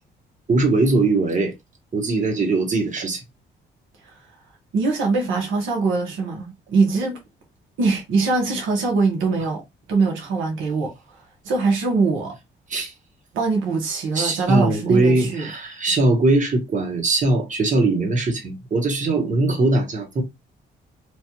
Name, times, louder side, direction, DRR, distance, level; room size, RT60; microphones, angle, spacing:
voice 1, 0.5-1.5 1.9-3.2 12.7-12.9 14.1-20.2, right 2 dB, 40° right, 1.2 m, -20 dB
voice 2, 4.7-7.2 7.8-9.6 9.9-10.9 11.4-12.3 13.3-15.5, right 4 dB, 85° right, 1.2 m, -22 dB
3.1 x 2.4 x 2.9 m
cardioid pair, 90°, 20 cm